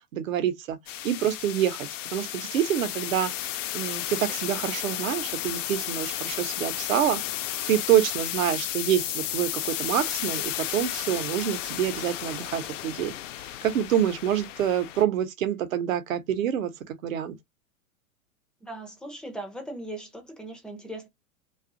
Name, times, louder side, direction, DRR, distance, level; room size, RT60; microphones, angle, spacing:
voice 1, 0.1-0.8 1.0-3.3 3.7-7.2 7.7-17.4, right 10 dB, 65° right, 0.8 m, -27 dB
sound 1, 0.9-15.0, left 12 dB, 60° left, 0.5 m, -33 dB
voice 2, 18.6-21.1, right 1 dB, ahead, 0.4 m, -39 dB
2.5 x 2.4 x 2.5 m
hypercardioid pair, 100°, 42 cm